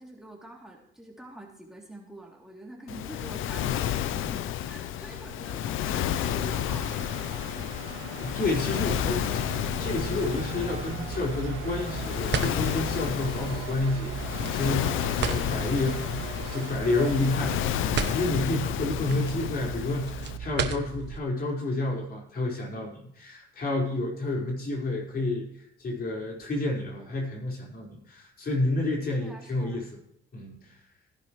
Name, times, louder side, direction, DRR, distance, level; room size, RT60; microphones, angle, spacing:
voice 1, 0.0-9.6 29.2-29.8, right 1 dB, ahead, -2 dB, 2.9 m, -46 dB
Waves surf, 2.9-20.4, left 10 dB, 85° left, 0.6 m, -31 dB
sound 1, 6.5-18.8, right 9 dB, 85° right, 1.7 m, -43 dB
voice 2, 8.2-9.4 9.8-14.1 14.5-30.0 30.3-30.8, left 2 dB, 50° left, -1 dB, 4.8 m, -30 dB
sound 2, 8.9-21.2, right 7 dB, 65° right, 1.1 m, -36 dB
17.0 x 11.0 x 3.2 m, 0.70 s
cardioid pair, 90°, 20 cm